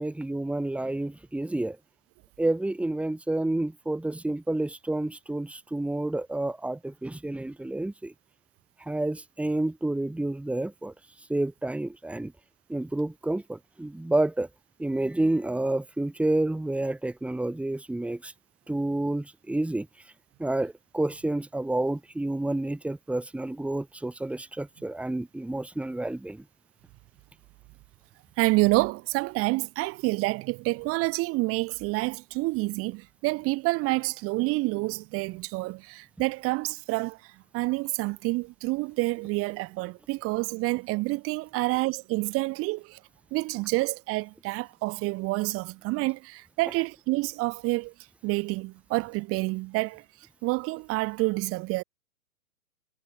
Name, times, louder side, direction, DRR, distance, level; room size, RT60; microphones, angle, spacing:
voice 1, 0.0-1.8 2.4-8.1 8.8-10.9 11.3-12.3 12.7-14.5 14.8-18.3 18.7-19.9 20.4-26.4, right 2 dB, 5° right, 4.4 m, -29 dB
voice 2, 28.4-43.0 43.3-47.9 48.2-50.0 50.4-51.8, right 23 dB, 30° right, 4.7 m, -28 dB
hypercardioid pair, 130°, 45 cm